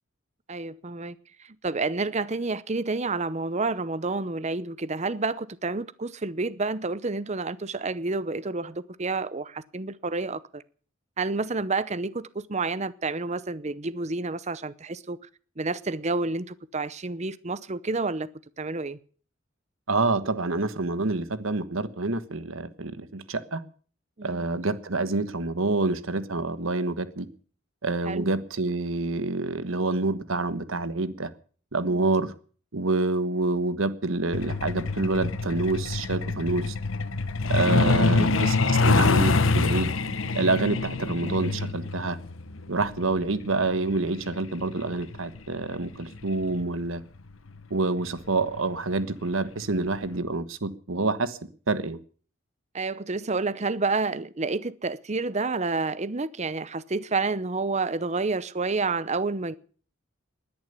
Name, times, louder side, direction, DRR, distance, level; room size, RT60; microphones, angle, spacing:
voice 1, 0.5-1.1 1.6-10.6 11.2-15.2 15.6-18.3 18.6-19.0 24.2-24.5 28.0-28.3 31.9-32.1 38.2-38.5 40.0-40.4 52.7-59.6, right 3 dB, 35° right, 0.8 m, -29 dB
voice 2, 19.9-23.6 24.2-27.3 27.8-31.3 31.7-32.3 32.7-36.7 37.5-39.9 40.3-42.2 42.7-47.0 47.7-51.4 51.7-52.0, right 3 dB, 85° right, 1.4 m, -27 dB
Truck, 34.3-46.6 47.8-48.0 48.4-48.6 49.0-49.2 49.6-49.7 50.1-50.2, left 3 dB, 80° left, 1.2 m, -26 dB
sound 1, 37.5-39.6 40.0-40.7 41.0-42.5, right 2 dB, 50° right, 7.3 m, -54 dB
20.0 x 10.5 x 6.8 m
head